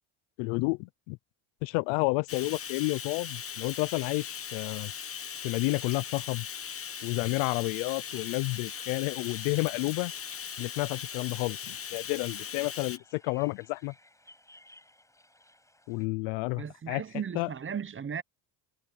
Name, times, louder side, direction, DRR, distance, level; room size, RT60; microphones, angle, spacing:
voice 1, 0.4-1.2 1.6-4.9 5.4-6.5 7.0-10.1 10.6-13.9 15.9-17.0 17.3-17.5, left 26 dB, 85° left, 0.8 m, -30 dB
Bathtub (filling or washing), 2.3-13.0, left 7 dB, 30° left, 1.0 m, -39 dB
sound 1, 9.2-16.1, left 1 dB, 5° left, 7.1 m, -60 dB
voice 2, 16.5-18.2, right 7 dB, 25° right, 0.9 m, -36 dB
supercardioid pair, 90°, 48 cm